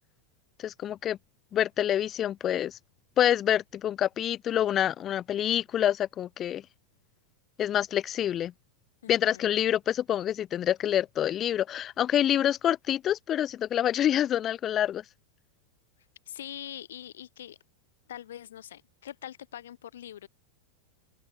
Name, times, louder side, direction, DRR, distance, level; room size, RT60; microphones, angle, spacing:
voice 1, 0.6-1.2 1.5-2.8 3.2-6.6 7.6-8.5 9.1-15.0, left 11 dB, 30° left, 0.6 m, -27 dB
voice 2, 9.0-9.5 16.3-17.6 18.1-20.3, left 11 dB, 60° left, 1.8 m, -43 dB
open air
figure-of-eight pair, 90°, 0 cm